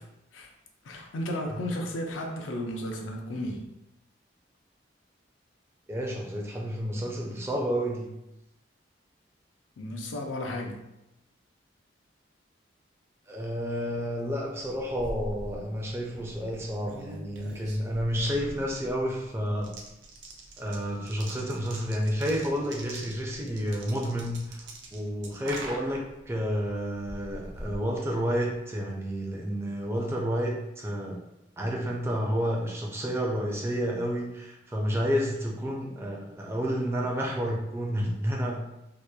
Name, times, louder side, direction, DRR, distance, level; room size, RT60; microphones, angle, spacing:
voice 1, 0.8-3.7 9.8-10.9, left 1 dB, 85° left, 2 dB, 0.4 m, -34 dB
voice 2, 5.9-8.1 13.3-19.7 20.6-24.6 24.9-31.2 31.6-38.6, equal, 15° right, -1 dB, 0.3 m, -30 dB
sound 1, 14.7-28.6, right 1 dB, 75° right, 0.4 m, -44 dB
2.8 x 2.1 x 2.2 m, 0.89 s
head